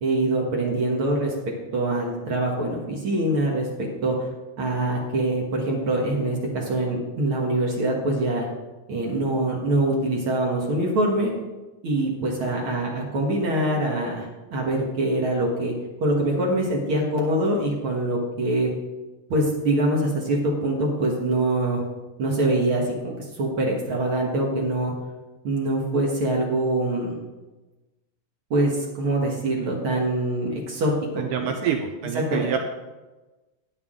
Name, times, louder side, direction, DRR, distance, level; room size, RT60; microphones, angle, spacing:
voice 1, 0.0-1.3 1.7-4.3 4.6-8.5 8.9-11.3 11.8-15.7 16.0-18.7 19.3-21.8 22.2-24.9 25.4-27.2 28.5-31.5 32.1-32.5, right 1 dB, 60° right, -2 dB, 1.3 m, -24 dB
voice 2, 31.2-32.6, right 8 dB, 85° right, 5 dB, 2.0 m, -27 dB
10.5 x 9.3 x 3.7 m, 1.1 s
omnidirectional pair, 4.4 m